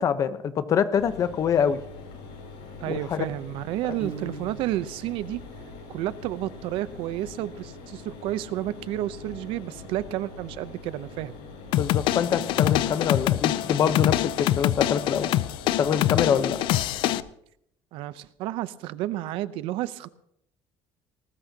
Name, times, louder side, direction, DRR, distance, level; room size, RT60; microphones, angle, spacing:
voice 1, 0.0-1.8 2.9-3.2 11.8-15.3 15.8-16.6, left 7 dB, 35° left, 12 dB, 0.9 m, -25 dB
Mechanisms, 1.0-17.2, left 4 dB, 85° left, 7.6 m, -43 dB
voice 2, 2.8-5.4 5.9-11.3 17.9-20.1, right 14 dB, 75° right, 15 dB, 0.7 m, -31 dB
Piano, 4.0-5.0, right 3 dB, 15° right, 5.5 m, -39 dB
sound 1, 11.7-17.2, left 14 dB, 65° left, 0.5 m, -25 dB
20.0 x 19.0 x 2.9 m, 0.71 s
cardioid pair, 165°, 9 cm